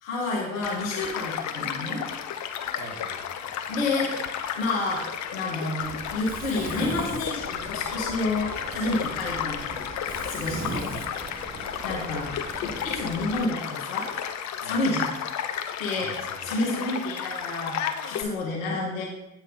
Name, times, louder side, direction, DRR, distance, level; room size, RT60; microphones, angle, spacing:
voice 1, 0.0-2.0 3.7-4.3 4.6-9.8 10.3-11.0 11.8-12.3 12.6-14.1 14.6-15.1 15.8-16.1 16.4-17.8 18.0-19.1, left 2 dB, 80° left, -3 dB, 1.4 m, -29 dB
Child speech kid speaking / Stream / Car passing by, 0.6-18.2, left 9 dB, 45° left, 0.6 m, -33 dB
voice 2, 2.7-3.7 10.5-11.1 11.5-11.8 14.6-14.8 15.9-16.6, right 2 dB, 50° right, 2 dB, 1.6 m, -45 dB
Mechanisms, 5.8-13.4, right 4 dB, 20° right, 0.8 m, -38 dB
8.0 x 3.2 x 5.1 m, 0.95 s
hypercardioid pair, 55°, 40 cm